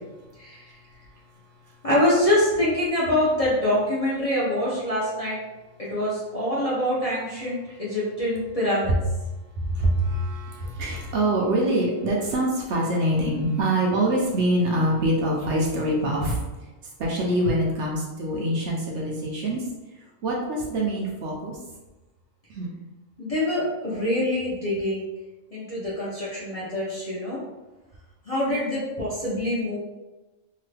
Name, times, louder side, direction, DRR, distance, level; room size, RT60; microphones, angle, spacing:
voice 1, 1.8-5.4 5.8-8.9 23.2-25.1 25.5-27.4 28.3-29.8, left 1 dB, 35° left, -9 dB, 0.6 m, -25 dB
voice 2, 9.6-16.4 17.0-19.6 20.2-21.6 22.5-22.7, right 1 dB, 65° right, -2 dB, 0.8 m, -24 dB
2.9 x 2.3 x 3.2 m, 1.1 s
omnidirectional pair, 1.4 m